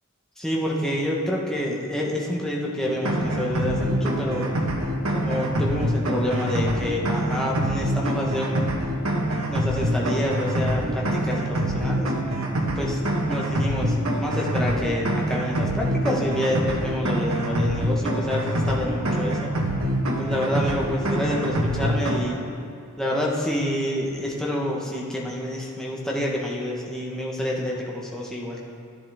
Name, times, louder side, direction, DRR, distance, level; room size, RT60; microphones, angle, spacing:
voice 1, 0.4-4.5 5.1-8.6 9.5-12.1 12.7-19.5 20.1-22.4 23.0-28.6, left 1 dB, 5° left, -3 dB, 1.2 m, -28 dB
sound 1, 2.8-22.2, right 1 dB, 90° right, 1.3 m, -25 dB
12.0 x 10.0 x 3.5 m, 2.5 s
head